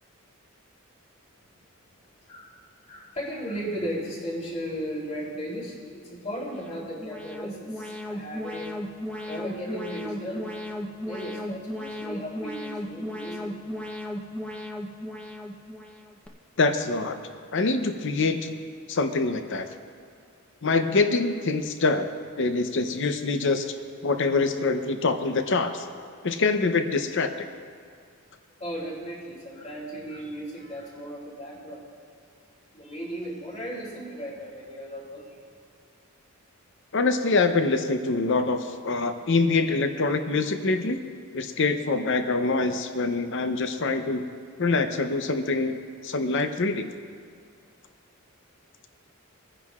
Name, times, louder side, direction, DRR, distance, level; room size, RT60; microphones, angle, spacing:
voice 1, 2.9-8.7 9.1-10.5 11.1-13.5 28.6-31.8 32.7-35.4, equal, 35° left, -5 dB, 3.3 m, -36 dB
Alarm, 6.4-16.3, left 1 dB, 5° left, 0.8 m, -36 dB
voice 2, 16.6-17.2 17.5-18.6 18.9-19.7 20.6-22.1 22.4-23.7 24.0-25.9 26.2-27.5 36.9-41.0 41.3-44.3 44.6-46.9, left 3 dB, 55° left, 7 dB, 0.7 m, -25 dB
24.0 x 9.8 x 2.4 m, 2.3 s
head